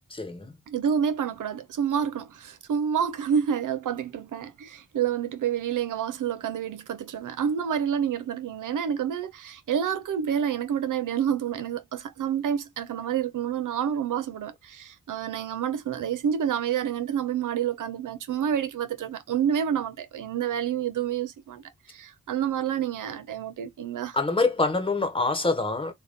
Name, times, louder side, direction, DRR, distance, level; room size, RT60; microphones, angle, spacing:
voice 1, 0.1-0.5 24.1-25.9, left 3 dB, 15° left, 1.0 m, -25 dB
voice 2, 0.7-24.2, right 8 dB, 90° right, 0.6 m, -28 dB
4.0 x 2.1 x 3.5 m
cardioid pair, 65°, 30 cm